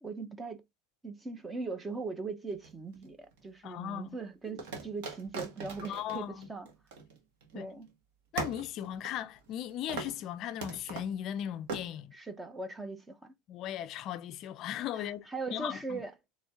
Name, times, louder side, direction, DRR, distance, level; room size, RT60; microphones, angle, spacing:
voice 1, 0.0-0.6 1.0-6.7 7.5-7.9 12.1-13.3 14.9-16.1, right 3 dB, 15° right, 0.7 m, -40 dB
sound 1, 2.5-3.4 4.6-7.5 7.8-7.9 8.4-9.6 9.9-10.2 10.6-11.1 11.7-11.9, right 4 dB, 70° right, 1.6 m, -40 dB
voice 2, 3.6-4.2 5.9-6.5 7.5-7.7 8.3-12.1 13.5-16.0, left 11 dB, 45° left, 0.4 m, -37 dB
4.2 x 3.1 x 3.5 m
supercardioid pair, 125°, 0 cm